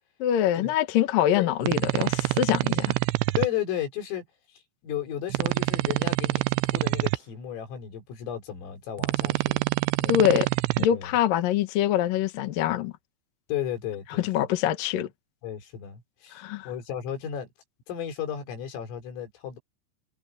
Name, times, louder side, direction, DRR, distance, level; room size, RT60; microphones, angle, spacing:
voice 1, 0.2-3.0 10.1-10.5 10.8-12.9 14.2-15.1 16.3-16.7, left 11 dB, 65° left, 2.4 m, -24 dB
sound 1, 1.6-3.5 5.3-7.2 9.0-10.9, right 21 dB, 85° right, 2.5 m, -26 dB
voice 2, 3.4-4.2 4.8-9.7 10.0-10.3 10.9-11.1 13.5-14.3 15.4-17.5 17.9-19.6, left 10 dB, 85° left, 6.8 m, -34 dB
omnidirectional pair, 5.7 m